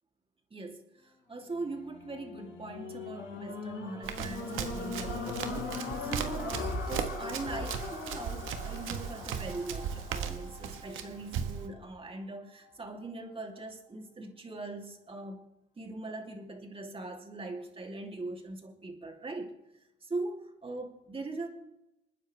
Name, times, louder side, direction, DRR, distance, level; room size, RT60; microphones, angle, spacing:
voice 1, 0.5-15.4 15.8-19.5 20.0-21.5, right 2 dB, 30° right, 2 dB, 3.0 m, -41 dB
sound 1, 1.4-11.7 12.3-12.4, left 4 dB, 70° left, 5.6 m, -40 dB
Run, 4.0-11.7, right 8 dB, 85° right, 1.4 m, -37 dB
27.5 x 10.0 x 3.4 m, 0.89 s
cardioid pair, 90°, 20 cm